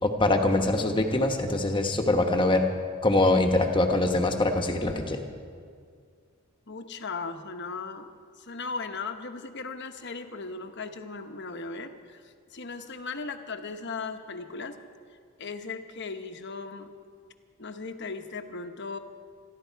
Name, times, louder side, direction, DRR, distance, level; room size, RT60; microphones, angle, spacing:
voice 1, 0.0-2.7 3.0-5.2, left 2 dB, 20° left, 4 dB, 1.2 m, -23 dB
voice 2, 6.7-8.1 8.4-14.8 15.4-16.9 17.6-19.0, left 4 dB, 50° left, 7 dB, 1.0 m, -37 dB
26.0 x 12.0 x 4.6 m, 2.1 s
head